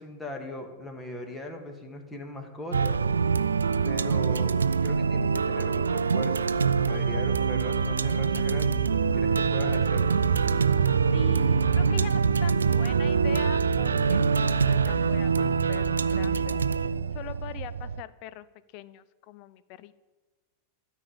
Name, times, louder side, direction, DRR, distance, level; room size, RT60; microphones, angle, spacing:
voice 1, 0.0-3.0 3.8-4.5 4.8-8.8 9.1-10.2, left 1 dB, 15° left, 4 dB, 1.8 m, -39 dB
sound 1, 2.7-18.0, right 6 dB, 75° right, 0.3 m, -24 dB
sound 2, 6.6-17.3, right 2 dB, 20° right, 0.6 m, -39 dB
voice 2, 11.1-16.6 17.1-18.5 18.7-20.0, left 12 dB, 45° left, 16 dB, 0.5 m, -42 dB
13.0 x 5.4 x 8.8 m, 1.2 s
figure-of-eight pair, 90°, 0 cm